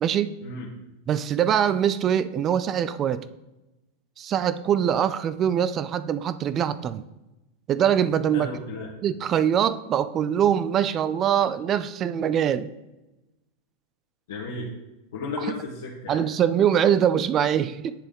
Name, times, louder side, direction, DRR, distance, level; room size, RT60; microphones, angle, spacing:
voice 1, 0.0-0.3 1.1-3.2 4.2-7.0 7.7-8.5 9.0-12.7 15.4-15.6 16.1-17.9, right 9 dB, 35° right, 14 dB, 0.4 m, -23 dB
voice 2, 8.3-8.9 14.3-14.7 15.1-16.3, left 3 dB, 80° left, -3 dB, 1.2 m, -34 dB
9.9 x 3.5 x 3.7 m, 1.0 s
hypercardioid pair, 110°, 0 cm